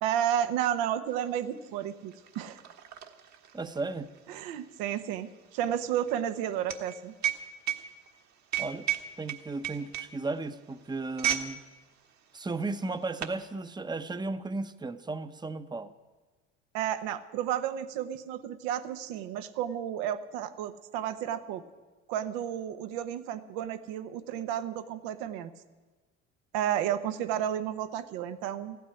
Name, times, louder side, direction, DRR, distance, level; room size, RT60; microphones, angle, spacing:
voice 1, 0.0-2.6 4.3-7.1 16.7-21.6 22.1-25.5 26.5-28.8, right 10 dB, 75° right, 11 dB, 1.2 m, -32 dB
sound 1, 1.2-1.3 1.6-11.5 11.8-12.1 12.8-13.4, right 10 dB, 50° right, 1.6 m, -35 dB
voice 2, 3.5-4.1 8.6-8.9 9.2-11.6 12.3-15.9, right 3 dB, 10° right, 11 dB, 0.9 m, -35 dB
15.5 x 9.3 x 9.8 m, 1.2 s
hypercardioid pair, 65°, 36 cm